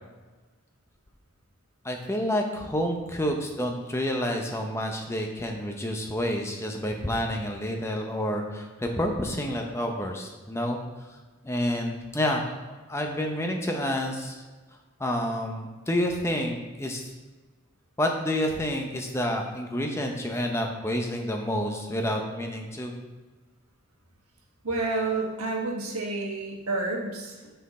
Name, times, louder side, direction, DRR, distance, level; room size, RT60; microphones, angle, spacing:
voice 1, 1.8-10.8 11.4-12.4 12.9-14.4 15.0-17.0 18.0-22.9, left 1 dB, 10° left, 2 dB, 0.6 m, -29 dB
voice 2, 24.6-27.5, right 3 dB, 85° right, 0 dB, 1.4 m, -29 dB
6.3 x 5.6 x 4.2 m, 1.3 s
head